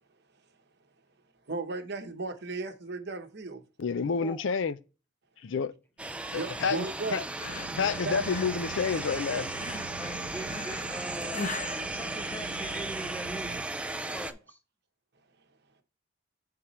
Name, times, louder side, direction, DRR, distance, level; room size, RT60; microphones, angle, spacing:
voice 1, 1.5-3.6 6.3-7.2 8.0-8.2, right 3 dB, 55° right, 0.9 m, -35 dB
voice 2, 3.8-4.8 5.4-5.7 6.3-7.3 7.8-9.5, left 5 dB, 70° left, 0.4 m, -29 dB
sound 1, 6.0-14.3, right 2 dB, 5° right, 0.3 m, -36 dB
sound 2, 7.4-12.9, left 3 dB, 40° left, 0.8 m, -41 dB
sound 3, 7.4-13.6, right 5 dB, 75° right, 0.5 m, -44 dB
voice 3, 9.9-11.4 11.7-13.6 14.1-14.6, right 1 dB, 10° left, 0.7 m, -42 dB
8.6 x 3.7 x 3.1 m
head